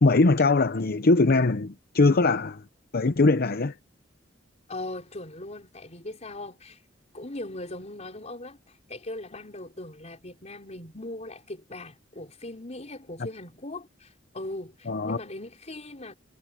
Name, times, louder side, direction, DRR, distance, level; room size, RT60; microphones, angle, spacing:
voice 1, 0.0-2.6 2.9-3.7 14.9-15.2, left 3 dB, 50° left, 0.7 m, -21 dB
voice 2, 4.7-6.8 7.1-8.6 8.9-16.2, left 2 dB, 35° left, 4.8 m, -39 dB
head